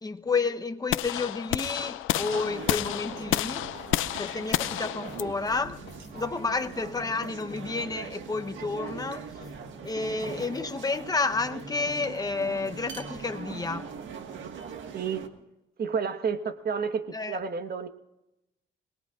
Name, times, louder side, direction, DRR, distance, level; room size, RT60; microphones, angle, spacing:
voice 1, 0.0-3.7 4.2-5.8 6.1-9.3 9.8-13.9 17.1-17.4, left 4 dB, 20° left, 0.9 m, -30 dB
sound 1, 0.9-7.0, left 14 dB, 85° left, 0.5 m, -31 dB
sound 2, 2.1-15.3, right 6 dB, 75° right, 1.7 m, -41 dB
sound 3, 5.0-8.1 8.3-11.0 11.3-12.4 12.7-13.8, left 3 dB, 50° left, 2.1 m, -49 dB
voice 2, 15.8-17.9, right 6 dB, 50° right, 1.4 m, -30 dB
26.0 x 19.5 x 2.5 m
cardioid pair, 90°, 20 cm